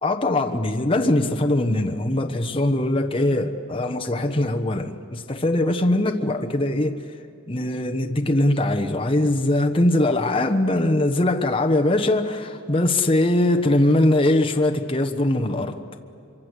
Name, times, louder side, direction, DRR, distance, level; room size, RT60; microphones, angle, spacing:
voice 1, 0.0-7.0 7.5-15.8, left 1 dB, 25° left, 1.1 m, -21 dB
25.0 x 24.5 x 8.1 m
head